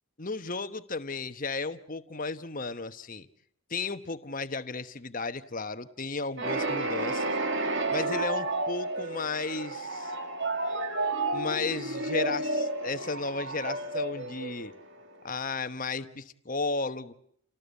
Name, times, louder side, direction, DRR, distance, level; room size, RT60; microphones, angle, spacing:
voice 1, 0.2-3.3 3.7-7.4 7.9-10.1 11.3-14.7 15.2-17.1, left 3 dB, 40° left, 11 dB, 1.1 m, -34 dB
sound 1, 6.4-15.1, right 2 dB, 55° right, 2.0 m, -31 dB
29.5 x 18.5 x 8.3 m, 0.68 s
head